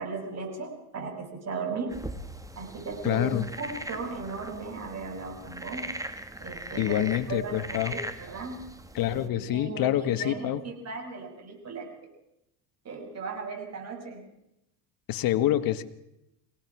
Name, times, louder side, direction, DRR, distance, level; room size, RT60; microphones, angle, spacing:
voice 1, 0.0-2.0 2.6-5.9 6.4-8.7 9.0-12.1 12.8-14.3, right 4 dB, 40° right, 2 dB, 6.9 m, -37 dB
sound 1, 1.9-9.3, right 1 dB, 10° right, 1.7 m, -40 dB
voice 2, 3.0-3.5 6.8-8.0 8.9-10.6 15.1-15.8, left 13 dB, 55° left, 11 dB, 1.6 m, -26 dB
24.0 x 18.0 x 6.2 m, 0.83 s
supercardioid pair, 100°, 41 cm